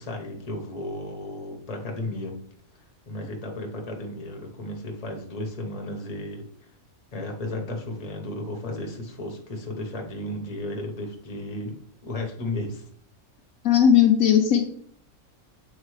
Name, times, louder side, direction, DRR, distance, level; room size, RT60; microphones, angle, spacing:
voice 1, 0.0-2.3 3.1-6.4 7.1-11.8 12.0-12.8, left 1 dB, 30° left, 2 dB, 1.1 m, -34 dB
voice 2, 13.6-14.6, left 9 dB, 70° left, 4 dB, 1.1 m, -17 dB
7.4 x 4.6 x 3.2 m, 0.62 s
omnidirectional pair, 1.5 m